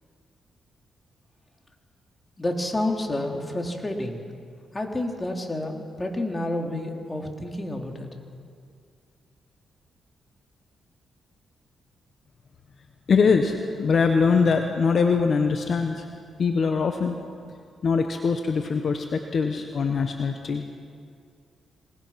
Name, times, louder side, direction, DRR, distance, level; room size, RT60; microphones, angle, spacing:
voice 1, 2.4-4.2 4.7-8.1, left 1 dB, 25° left, 2 dB, 3.7 m, -29 dB
voice 2, 13.1-16.0 16.4-17.2 17.8-20.7, left 5 dB, 60° left, 5 dB, 1.4 m, -22 dB
27.0 x 19.5 x 6.0 m, 2.2 s
cardioid pair, 60°, 0 cm